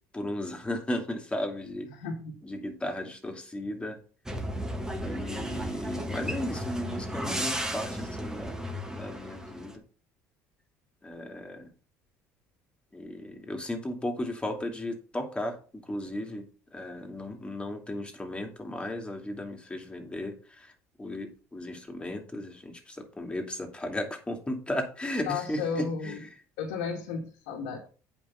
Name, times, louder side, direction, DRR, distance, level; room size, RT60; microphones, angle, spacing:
voice 1, 0.1-1.9 2.4-4.0 4.9-8.6 8.9-9.8 11.0-11.7 12.9-16.5 16.7-20.7 21.0-26.3, left 1 dB, 15° left, 3 dB, 2.8 m, -35 dB
voice 2, 1.9-2.3 25.2-26.2 26.6-27.8, left 5 dB, 90° left, -1 dB, 2.1 m, -33 dB
sound 1, 4.3-9.8, equal, 10° right, 1.9 m, -34 dB
8.7 x 5.4 x 5.9 m, 0.37 s
supercardioid pair, 90°, 7 cm